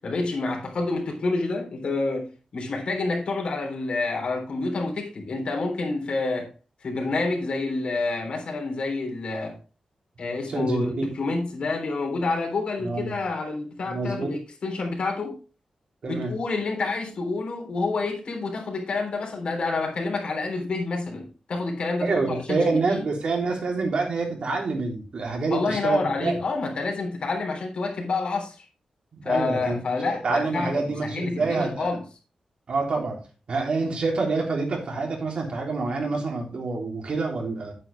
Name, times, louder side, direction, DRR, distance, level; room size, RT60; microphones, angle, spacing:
voice 1, 0.0-6.5 6.8-9.6 10.2-15.4 16.0-23.0 25.5-28.7 29.2-32.0, left 3 dB, 60° left, 3.5 m, -28 dB
voice 2, 10.5-11.1 12.8-13.1 13.9-14.4 16.0-16.3 22.0-26.4 29.1-29.8 30.0-31.9 32.7-33.2 33.5-37.7, right 3 dB, 60° right, 3.3 m, -27 dB
9.8 x 8.8 x 3.4 m
wide cardioid pair, 155°, 2 cm